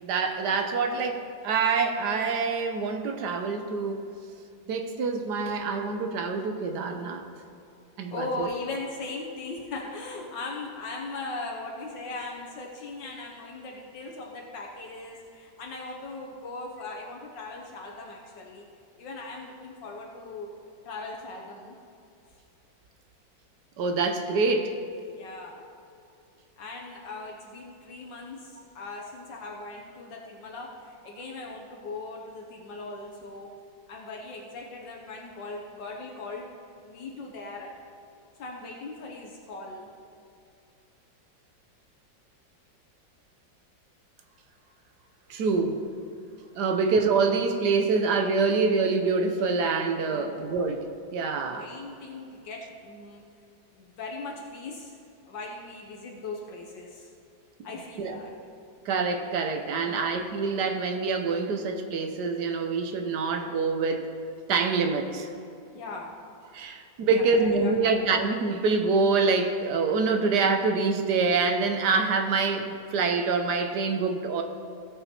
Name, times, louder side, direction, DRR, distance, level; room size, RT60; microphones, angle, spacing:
voice 1, 0.0-4.1 4.7-7.2 8.0-8.3 23.8-24.8 45.3-45.8 46.5-51.7 58.0-58.2 58.8-64.1 64.5-65.3 66.5-74.4, right 4 dB, 65° right, 6 dB, 1.3 m, -26 dB
voice 2, 8.1-18.7 19.0-21.8 25.1-25.6 26.6-33.5 33.9-36.5 36.8-37.7 38.4-39.9 50.1-50.5 51.5-53.2 53.7-55.0 55.3-57.1 57.6-58.3 59.7-60.2 65.7-66.1 67.1-68.0, left 3 dB, 70° left, -1 dB, 1.6 m, -39 dB
16.5 x 5.7 x 4.4 m, 2.5 s
omnidirectional pair, 2.1 m